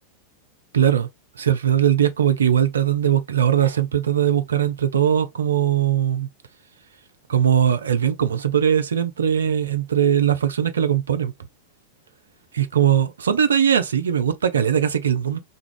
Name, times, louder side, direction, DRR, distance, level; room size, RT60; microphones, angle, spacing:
voice 1, 0.7-1.1 1.4-6.3 7.3-11.3 12.5-15.4, right 9 dB, 70° right, 0.4 m, -20 dB
2.4 x 2.3 x 3.0 m
figure-of-eight pair, 90°, 0 cm